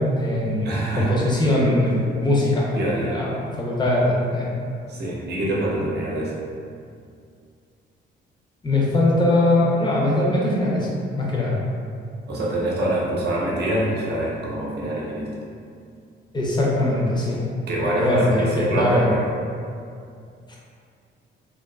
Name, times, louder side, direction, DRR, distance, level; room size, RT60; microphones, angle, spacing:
voice 1, 0.0-0.7 1.0-2.7 2.9-4.5 8.6-10.9 11.2-11.6 16.3-17.4 17.9-19.1, left 1 dB, 20° left, -4 dB, 0.6 m, -21 dB
voice 2, 0.6-1.2 2.7-3.2 4.9-6.3 12.3-15.3 17.7-19.3, right 1 dB, 55° right, -5 dB, 0.7 m, -25 dB
2.4 x 2.4 x 2.2 m, 2.4 s
cardioid pair, 90°, 20 cm